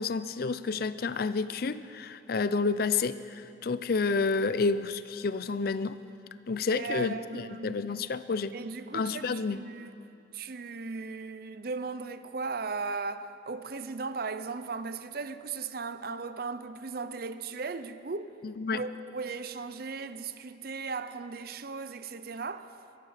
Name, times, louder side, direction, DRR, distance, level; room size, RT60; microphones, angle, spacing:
voice 1, 0.0-3.2 3.6-6.0 6.5-8.5 8.9-9.7 18.4-18.8, left 4 dB, 55° left, 0.5 m, -29 dB
voice 2, 6.7-7.9 8.5-9.9 10.3-18.3 18.7-22.7, right 4 dB, 55° right, 0.6 m, -37 dB
22.0 x 12.0 x 5.0 m
head